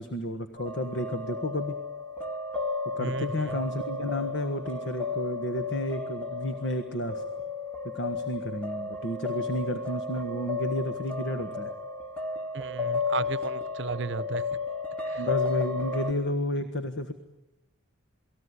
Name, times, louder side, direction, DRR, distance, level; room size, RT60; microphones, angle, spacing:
voice 1, 0.0-1.8 3.0-7.2 7.9-11.7 15.2-17.1, left 1 dB, 55° left, 1.5 m, -31 dB
sound 1, 0.6-16.1, left 4 dB, 5° left, 2.0 m, -33 dB
voice 2, 3.0-3.6 12.5-14.5 15.1-15.2, right 4 dB, 55° right, 0.9 m, -34 dB
28.5 x 19.5 x 9.8 m
head